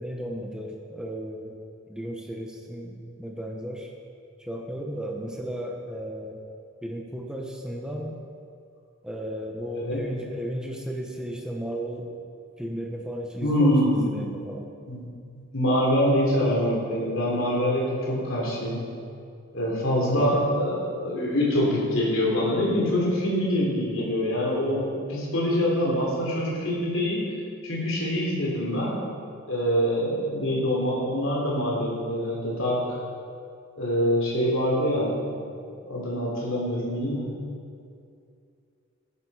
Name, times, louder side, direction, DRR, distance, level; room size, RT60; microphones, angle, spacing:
voice 1, 0.0-1.6 1.9-3.9 4.4-6.4 6.8-8.2 9.0-12.1 12.6-14.7 20.0-20.6, equal, 5° right, 0 dB, 1.1 m, -34 dB
voice 2, 13.4-14.0 14.9-15.0 15.5-18.8 19.5-27.3 27.6-29.0 29.5-33.0 33.8-35.1 35.9-37.3, equal, 70° left, -3 dB, 3.3 m, -25 dB
14.5 x 11.0 x 5.0 m, 2.4 s
head